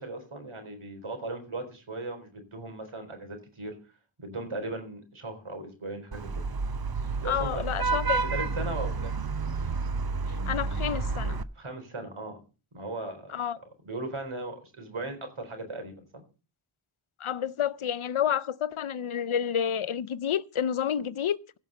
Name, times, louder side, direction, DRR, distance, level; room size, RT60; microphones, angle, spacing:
voice 1, 0.0-3.7 4.2-6.4 7.0-7.6 8.2-9.2 11.5-12.4 12.7-13.4 13.8-16.2, right 2 dB, 80° right, 4.1 m, -37 dB
Vehicle horn car horn honking / Traffic noise roadway noise, 6.1-11.4, right 4 dB, 50° right, 0.8 m, -30 dB
voice 2, 7.2-8.2 10.5-11.4 13.3-13.6 17.2-21.6, left 9 dB, 85° left, 0.7 m, -29 dB
16.5 x 6.1 x 6.7 m
wide cardioid pair, 45°, 48 cm